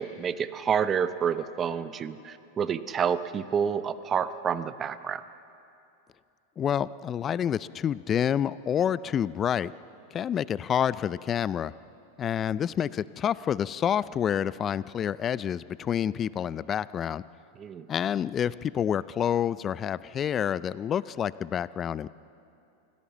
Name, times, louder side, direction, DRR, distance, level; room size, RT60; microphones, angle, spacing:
voice 1, 0.0-5.2 17.6-17.9, right 7 dB, 30° right, 13 dB, 0.9 m, -29 dB
voice 2, 6.6-9.7 10.1-11.7 12.2-17.2 17.9-22.1, left 9 dB, 30° left, 18 dB, 0.4 m, -28 dB
24.5 x 16.0 x 7.3 m, 2.6 s
hypercardioid pair, 105°, 0 cm